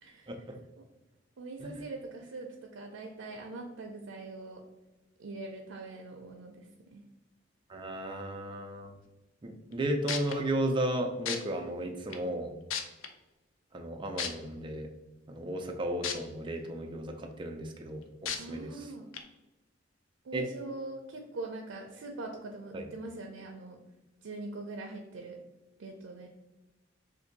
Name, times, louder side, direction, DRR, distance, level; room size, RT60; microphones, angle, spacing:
voice 1, 0.0-0.5 0.8-0.9 1.4-4.6 5.2-7.0 18.4-19.1 20.2-23.8 24.2-25.4 25.8-26.3, right 2 dB, 85° right, 2 dB, 0.5 m, -42 dB
voice 2, 7.7-8.9 9.4-12.5 13.7-14.9 15.3-18.7 20.3-20.4 22.7-22.8, right 1 dB, 25° right, 3 dB, 0.4 m, -34 dB
sound 1, 9.7-9.8 10.1-10.3 11.3-11.4 12.1-12.2 12.7-13.1 14.2-14.3 16.0-16.1 16.7-16.8 18.3-18.4 19.1-19.2, left 7 dB, 85° left, 0.4 m, -32 dB
2.6 x 2.6 x 3.9 m, 1.0 s
head